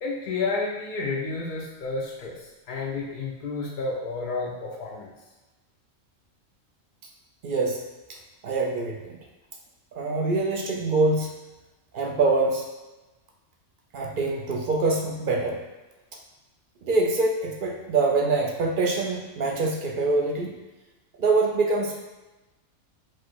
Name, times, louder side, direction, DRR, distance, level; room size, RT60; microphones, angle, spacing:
voice 1, 0.0-2.4 2.7-5.1, left 3 dB, 60° left, -2 dB, 0.5 m, -30 dB
voice 2, 7.4-7.8 8.4-9.2 10.0-11.3 11.9-12.7 13.9-15.6 16.8-20.6 21.2-22.1, right 3 dB, 60° right, 0 dB, 0.5 m, -24 dB
4.6 x 2.0 x 4.5 m, 1.1 s
omnidirectional pair, 1.4 m